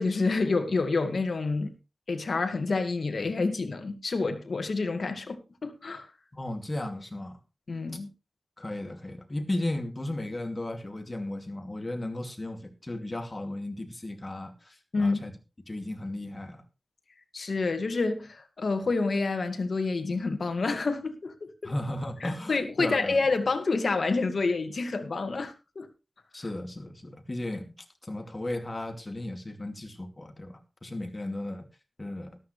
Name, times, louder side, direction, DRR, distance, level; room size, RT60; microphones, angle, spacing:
voice 1, 0.0-1.8 2.1-6.1 7.7-8.1 14.9-15.2 17.3-21.7 22.2-25.9, left 3 dB, 70° left, 2.0 m, -28 dB
voice 2, 6.3-7.4 8.6-15.3 15.7-16.6 21.6-23.2 26.3-31.7 32.0-32.4, left 1 dB, 30° left, 2.5 m, -35 dB
13.5 x 13.0 x 3.2 m
wide cardioid pair, 60°, 0 cm